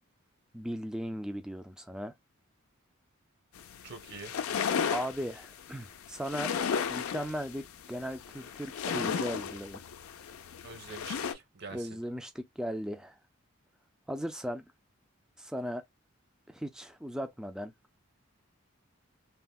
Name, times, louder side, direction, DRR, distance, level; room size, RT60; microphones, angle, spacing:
voice 1, 0.5-2.1 4.9-6.5 6.9-9.8 11.7-13.1 14.1-14.6 15.4-15.8 16.5-17.7, equal, 5° right, 0.3 m, -37 dB
sound 1, 3.6-11.3, left 7 dB, 90° left, 0.4 m, -34 dB
voice 2, 3.8-4.5 10.6-12.0, right 4 dB, 50° right, 0.8 m, -46 dB
3.4 x 2.1 x 2.3 m
head